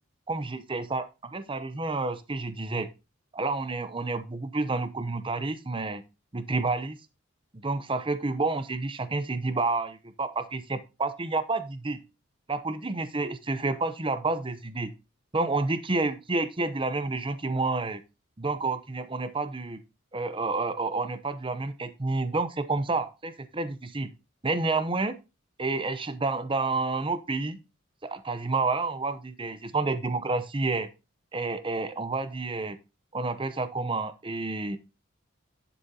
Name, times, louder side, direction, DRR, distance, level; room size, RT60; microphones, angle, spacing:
voice 1, 0.3-2.9 3.3-6.0 6.3-7.0 7.5-12.0 12.5-14.9 15.3-18.0 18.4-19.8 20.1-24.1 24.4-25.1 25.6-27.6 28.0-30.9 31.3-32.8 33.1-34.8, right 3 dB, 25° right, 12 dB, 0.8 m, -29 dB
10.5 x 7.1 x 2.9 m, 0.27 s
head